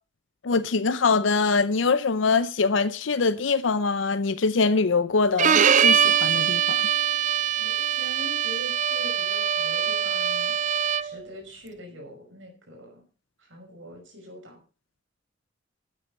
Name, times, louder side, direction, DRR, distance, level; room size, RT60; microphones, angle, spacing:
voice 1, 0.4-6.8, left 4 dB, 80° left, 0.6 m, -23 dB
Bowed string instrument, 5.4-11.2, right 8 dB, 40° right, 0.5 m, -23 dB
voice 2, 7.6-10.6 11.0-13.0 13.4-14.6, equal, 75° right, 5.5 m, -43 dB
12.5 x 9.2 x 5.5 m
head